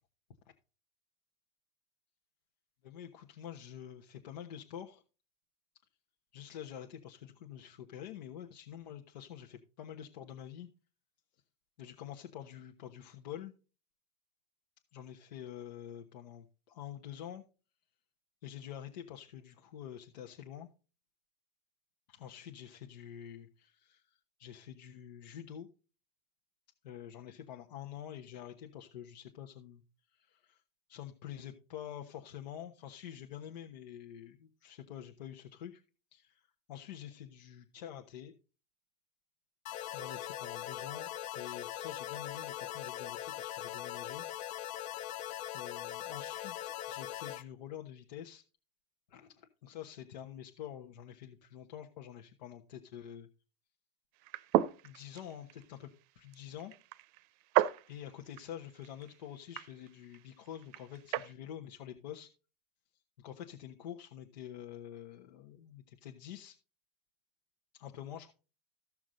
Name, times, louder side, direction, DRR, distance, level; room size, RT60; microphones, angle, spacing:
voice 1, 2.8-5.0 6.3-10.7 11.8-13.5 14.9-17.4 18.4-20.7 22.1-25.7 26.8-29.8 30.1-30.6 30.9-35.8 36.1-36.4 36.7-38.3 39.9-44.2 45.5-48.4 49.1-53.3 54.8-55.9 56.2-56.7 57.6-62.3 63.2-66.6 67.7-68.3, left 10 dB, 75° left, 3 dB, 1.2 m, -47 dB
sound 1, 39.7-47.4, left 13 dB, 35° left, 0.5 m, -41 dB
sound 2, 54.2-61.3, right 14 dB, 45° right, 0.6 m, -36 dB
14.5 x 6.1 x 3.9 m, 0.34 s
supercardioid pair, 130°, 21 cm